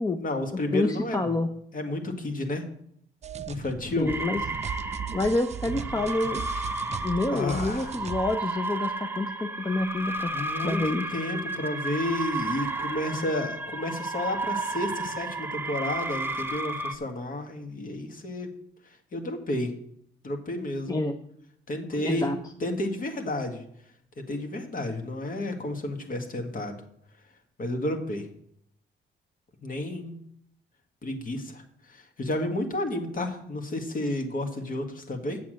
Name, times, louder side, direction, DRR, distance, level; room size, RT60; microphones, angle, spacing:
voice 1, 0.2-1.2 1.7-2.7 3.5-4.1 7.3-7.9 10.3-10.8 11.1-18.5 19.1-19.7 20.2-21.0 21.7-22.3 22.6-23.6 24.2-26.8 27.6-28.3 29.6-30.2 31.0-35.4, left 1 dB, 45° left, 5 dB, 1.9 m, -31 dB
voice 2, 0.7-1.5 4.0-4.4 5.1-6.4 7.0-10.4 10.6-11.1 20.9-21.2 22.0-22.4, left 2 dB, 20° left, 7 dB, 0.7 m, -27 dB
sound 1, 3.2-8.4, right 7 dB, 35° right, 0.5 m, -37 dB
sound 2, 4.1-16.9, right 2 dB, 10° right, 0.9 m, -33 dB
8.2 x 7.3 x 6.4 m, 0.70 s
cardioid pair, 90°, 20 cm